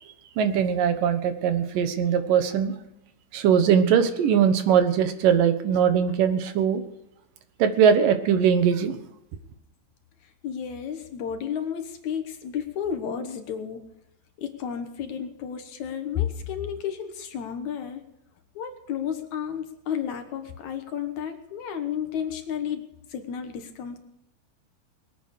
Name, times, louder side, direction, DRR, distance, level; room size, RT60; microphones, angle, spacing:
voice 1, 0.4-2.7 3.3-6.8 7.6-9.0, right 8 dB, 75° right, 9 dB, 2.8 m, -21 dB
voice 2, 10.4-13.8 14.4-18.0 18.6-22.8 23.1-24.0, left 8 dB, 65° left, 7 dB, 2.5 m, -32 dB
21.5 x 9.0 x 6.6 m, 0.82 s
omnidirectional pair, 3.9 m